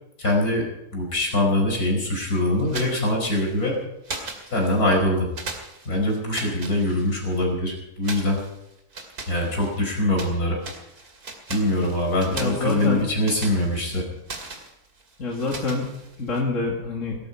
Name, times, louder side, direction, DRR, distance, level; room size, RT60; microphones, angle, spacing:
voice 1, 0.2-3.8 4.5-5.3 5.9-8.4 9.3-10.6 11.5-14.1, left 1 dB, 75° left, 0 dB, 5.5 m, -23 dB
sound 1, 2.6-3.7 4.0-5.0 5.3-7.4 8.0-10.4 10.6-16.4, right 3 dB, 85° right, 3.0 m, -39 dB
voice 2, 12.3-13.0 15.2-15.9 16.2-17.2, left 3 dB, 55° left, -2 dB, 2.4 m, -26 dB
18.5 x 13.5 x 5.6 m, 0.86 s
omnidirectional pair, 1.6 m